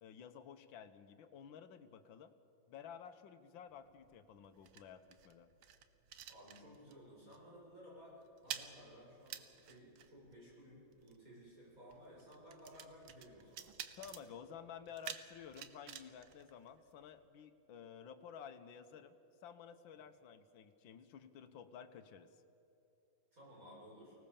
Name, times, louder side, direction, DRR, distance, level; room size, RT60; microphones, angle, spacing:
voice 1, 0.0-2.3 2.7-5.5 14.0-19.2 19.4-22.4, left 7 dB, 80° left, 9 dB, 1.7 m, -53 dB
sound 1, 3.7-7.1 7.3-7.6 7.8-17.2, right 9 dB, 90° right, 1.8 m, -51 dB
voice 2, 6.3-13.7 23.3-24.1, equal, 45° right, -6 dB, 8.3 m, -57 dB
24.5 x 18.5 x 7.1 m, 2.8 s
omnidirectional pair, 2.1 m